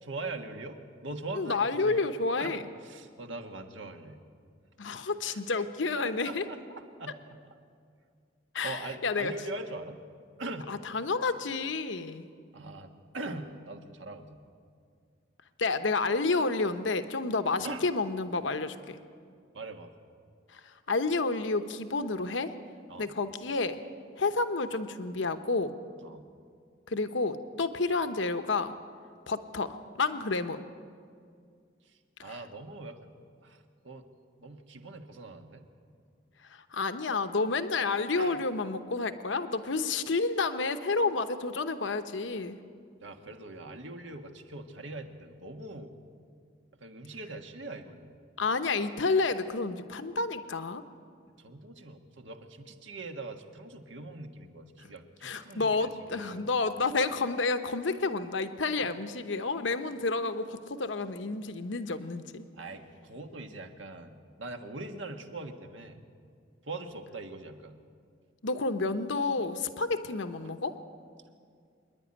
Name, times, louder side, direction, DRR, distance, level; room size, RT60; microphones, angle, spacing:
voice 1, 0.0-2.1 2.4-4.2 5.2-5.4 6.0-7.1 8.6-10.0 10.4-10.7 12.5-14.4 17.6-17.9 19.5-19.9 22.9-23.1 26.0-26.2 31.8-33.1 33.4-34.0 34.4-35.7 38.2-38.4 43.0-45.9 46.8-48.2 51.4-56.5 62.5-66.1 66.6-67.8, right 2 dB, 90° right, 5 dB, 1.6 m, -42 dB
voice 2, 1.3-2.6 4.8-6.4 8.5-9.3 10.7-12.2 15.6-19.0 20.5-22.5 23.0-23.8 24.2-25.7 26.9-28.7 29.3-30.6 32.2-32.3 36.4-42.6 48.4-50.8 54.8-54.9 55.2-62.5 68.4-70.7, left 3 dB, 85° left, 9 dB, 0.9 m, -30 dB
26.0 x 10.0 x 10.0 m, 2.2 s
head